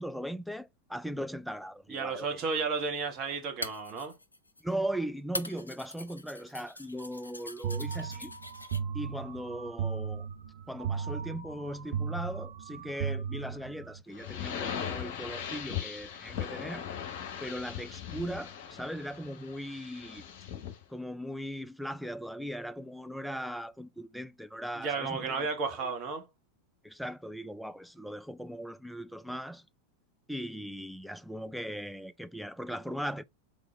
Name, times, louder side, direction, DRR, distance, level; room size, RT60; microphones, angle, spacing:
voice 1, 0.0-2.4 4.6-8.3 8.9-10.3 10.7-16.8 17.4-20.2 20.9-25.5 25.8-25.9 26.8-29.6 30.3-33.2, equal, ahead, 0.3 m, -38 dB
voice 2, 1.9-4.2 24.7-26.3, right 4 dB, 35° right, 1.3 m, -33 dB
sound 1, 2.4-2.5 3.4-4.7 5.3-8.8, left 2 dB, 80° left, 0.5 m, -42 dB
sound 2, 7.6-14.0, right 7 dB, 60° right, 1.1 m, -36 dB
sound 3, 14.1-20.8, left 9 dB, 45° left, 1.0 m, -39 dB
3.8 x 3.7 x 3.2 m
figure-of-eight pair, 90°, 0 cm